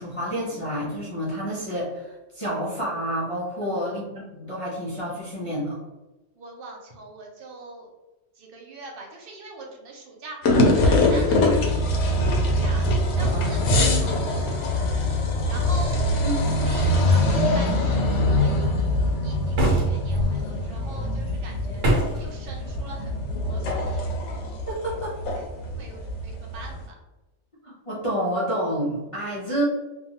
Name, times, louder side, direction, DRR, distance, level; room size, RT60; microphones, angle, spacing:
voice 1, 0.0-5.8 13.3-14.4 16.2-16.6 24.7-25.2 27.6-29.6, equal, 45° left, -8 dB, 0.4 m, -29 dB
voice 2, 3.6-4.0 6.4-7.9 8.4-11.5 11.8-12.8 13.2-15.0 15.5-16.0 16.6-18.9 19.2-21.8 22.2-24.1 25.3-26.9, right 2 dB, 60° right, 0 dB, 0.7 m, -42 dB
sound 1, 10.4-26.8, left 1 dB, 70° left, 0.9 m, -23 dB
sound 2, 19.5-20.3 21.8-22.3, right 1 dB, 80° right, 1.1 m, -23 dB
2.6 x 2.3 x 2.8 m, 1.1 s
omnidirectional pair, 1.3 m